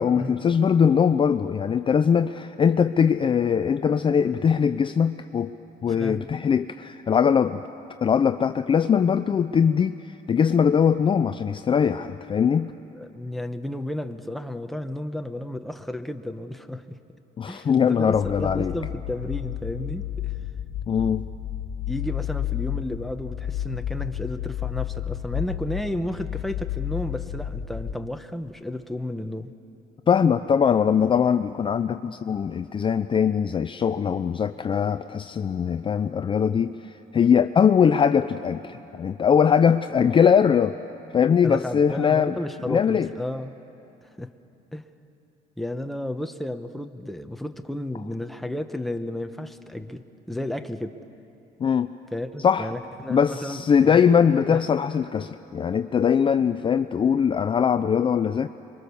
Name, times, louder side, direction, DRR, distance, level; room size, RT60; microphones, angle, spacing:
voice 1, 0.0-5.5 5.8-7.6 8.0-10.0 10.3-12.7 17.4-18.7 20.9-21.3 30.1-36.8 37.1-40.8 41.1-42.4 42.7-43.1 51.6-51.9 52.4-52.7 53.1-58.5, left 7 dB, 30° left, 10 dB, 0.5 m, -21 dB
voice 2, 12.9-17.0 17.5-20.3 21.9-29.5 41.4-43.5 44.0-44.3 44.7-44.9 45.6-51.0 52.1-54.6, left 1 dB, ahead, 7 dB, 1.0 m, -32 dB
sound 1, 18.1-27.9, left 11 dB, 75° left, 1.6 m, -32 dB
24.5 x 23.5 x 7.0 m, 3.0 s
cardioid pair, 110°, 17 cm